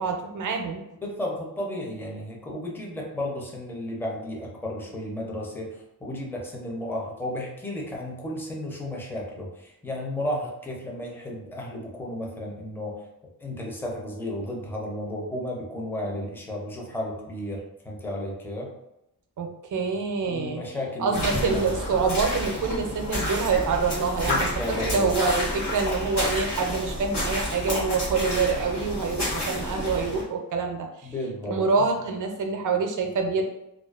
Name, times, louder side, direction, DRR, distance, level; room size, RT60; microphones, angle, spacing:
voice 1, 0.0-0.8 19.4-20.6 21.0-30.9 31.5-33.4, right 4 dB, 55° right, 3 dB, 0.5 m, -26 dB
voice 2, 1.0-13.0 13.4-18.7 20.2-21.7 24.3-25.1 31.0-31.9, left 1 dB, 5° left, -2 dB, 0.5 m, -33 dB
sound 1, 21.1-30.2, left 1 dB, 85° left, 1.1 m, -30 dB
2.4 x 2.2 x 2.3 m, 0.86 s
wide cardioid pair, 90°, 39 cm